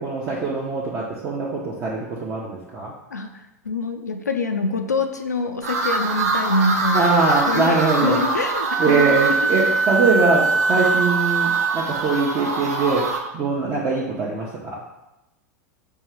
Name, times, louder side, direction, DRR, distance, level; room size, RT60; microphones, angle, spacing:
voice 1, 0.0-2.9 6.9-8.2 8.8-13.1 13.3-14.8, right 4 dB, 35° right, -4 dB, 0.7 m, -22 dB
voice 2, 3.1-7.0 7.5-9.2, left 2 dB, 85° left, 5 dB, 0.3 m, -25 dB
sound 1, 5.6-13.2, right 3 dB, 70° right, 0.7 m, -26 dB
Wind instrument woodwind instrument, 8.7-12.2, right 4 dB, 5° left, 0.6 m, -22 dB
4.4 x 2.9 x 3.3 m, 0.92 s
figure-of-eight pair, 85°, 9 cm